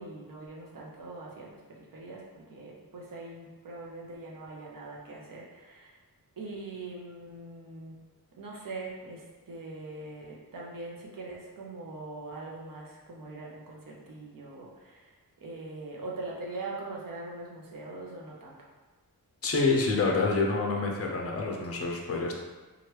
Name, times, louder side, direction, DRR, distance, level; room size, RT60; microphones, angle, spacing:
voice 1, 0.0-6.0 6.4-7.9 8.4-18.7, right 2 dB, 60° right, -3 dB, 0.7 m, -42 dB
voice 2, 19.4-22.3, left 3 dB, 40° left, 0 dB, 0.5 m, -27 dB
3.0 x 2.4 x 3.1 m, 1.2 s
wide cardioid pair, 155°, 37 cm